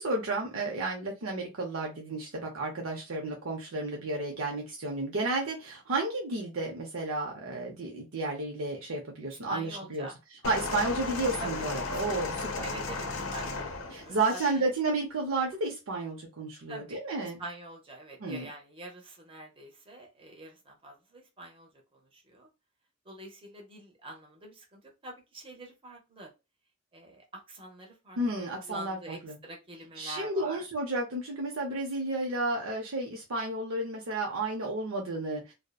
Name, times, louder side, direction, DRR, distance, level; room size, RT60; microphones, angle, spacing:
voice 1, 0.0-10.1 10.5-12.7 13.9-17.4 18.2-18.5 28.2-29.4 30.0-35.5, right 2 dB, 85° right, 0.6 m, -32 dB
voice 2, 9.3-10.2 11.4-12.0 12.6-14.6 16.7-22.5 23.0-26.3 26.9-30.6, right 1 dB, 25° right, 0.7 m, -45 dB
sound 1, 10.4-14.6 15.5-15.6, left 3 dB, 70° left, 0.6 m, -35 dB
2.7 x 2.0 x 2.3 m
head